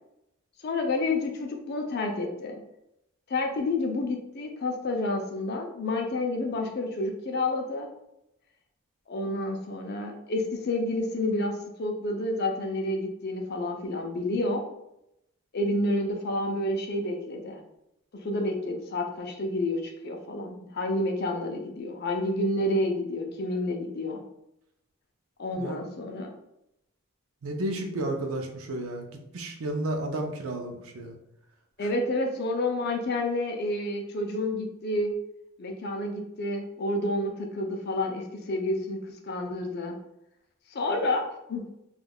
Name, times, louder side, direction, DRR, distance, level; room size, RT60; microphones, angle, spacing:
voice 1, 0.6-2.6 3.3-7.9 9.1-14.7 15.5-17.6 18.2-24.2 25.4-26.3 31.8-35.2 35.6-40.0 40.7-41.6, left 2 dB, 50° left, 3 dB, 0.4 m, -29 dB
voice 2, 27.4-29.1 29.3-31.1, right 1 dB, 85° right, 4 dB, 0.5 m, -32 dB
3.4 x 2.3 x 2.2 m, 0.83 s
head